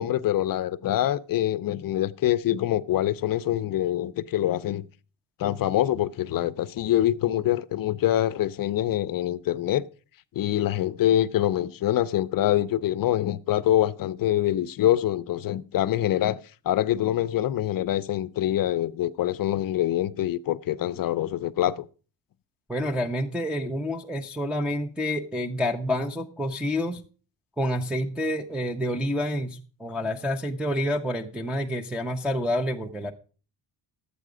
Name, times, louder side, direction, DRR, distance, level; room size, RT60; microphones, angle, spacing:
voice 1, 0.0-4.8 5.4-9.8 10.4-21.8, left 12 dB, 50° left, 0.5 m, -25 dB
voice 2, 22.7-27.0 27.6-33.1, left 1 dB, 5° right, 0.5 m, -28 dB
12.0 x 8.4 x 4.9 m
cardioid pair, 170°, 44 cm